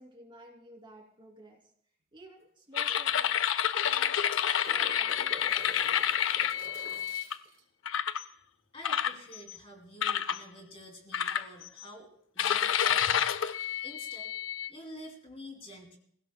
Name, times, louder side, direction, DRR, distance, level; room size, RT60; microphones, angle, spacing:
voice 1, 0.0-1.6 2.1-3.5 3.8-5.8, right 1 dB, 25° right, 1 dB, 2.8 m, -53 dB
sound 1, 2.4-2.5 2.8-2.9 3.9-7.6 10.2-10.3, right 2 dB, 50° right, 3.4 m, -48 dB
sound 2, 2.7-7.3 7.9-8.2 8.8-9.6 10.0-10.4 11.1-11.8 12.4-14.7, left 9 dB, 85° left, 0.5 m, -29 dB
voice 2, 8.7-13.3 13.8-14.3 14.7-16.0, equal, 30° left, 1 dB, 2.8 m, -48 dB
26.5 x 16.5 x 2.2 m, 0.65 s
head